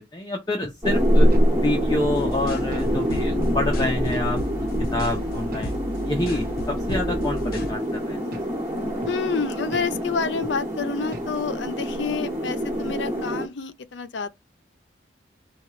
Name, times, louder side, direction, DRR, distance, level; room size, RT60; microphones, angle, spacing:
voice 1, 0.1-1.3 1.6-4.4 4.9-5.7 6.0-8.2, left 1 dB, 20° left, 0.7 m, -27 dB
sound 1, 0.6-0.8 1.3-1.5 2.0-2.2 2.7-2.9 3.4-3.6 4.1-4.3 4.8-5.0 5.5-5.7 6.2-6.4 6.9-7.1 7.6-7.8 8.3-8.5 9.0-9.2 9.7-9.9 10.4-10.6 11.1-11.3, equal, 50° right, 0.8 m, -39 dB
sound 2, 0.8-13.5, equal, 15° right, 1.6 m, -25 dB
sound 3, 2.0-7.7, equal, 50° left, 0.9 m, -34 dB
voice 2, 9.1-14.3, left 5 dB, 65° left, 0.5 m, -28 dB
4.3 x 2.3 x 4.2 m
head